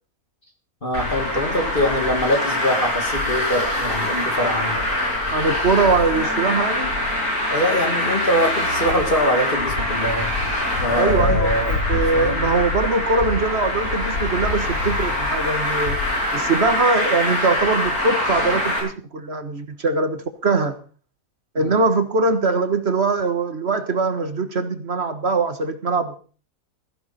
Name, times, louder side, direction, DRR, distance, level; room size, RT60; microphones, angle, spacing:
voice 1, 0.8-4.8 7.5-10.3 10.8-12.4 21.6-21.7, equal, 35° left, 2 dB, 2.4 m, -23 dB
Traffic noise roadway noise, 0.9-18.8, left 1 dB, 80° left, 6.8 m, -24 dB
voice 2, 5.3-6.9 11.0-16.0 16.3-20.8 21.5-26.2, right 3 dB, 45° right, 9 dB, 1.7 m, -22 dB
16.0 x 15.0 x 4.3 m, 0.40 s
omnidirectional pair, 1.6 m